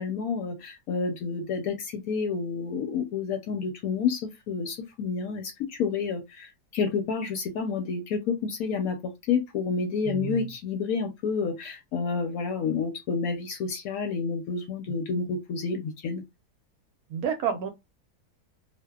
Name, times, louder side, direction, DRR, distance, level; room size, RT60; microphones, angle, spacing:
voice 1, 0.0-16.2, left 5 dB, 70° left, 0.9 m, -29 dB
voice 2, 10.0-10.5 14.9-15.0 17.1-17.7, right 8 dB, 70° right, 1.0 m, -30 dB
2.7 x 2.1 x 2.2 m
omnidirectional pair, 1.8 m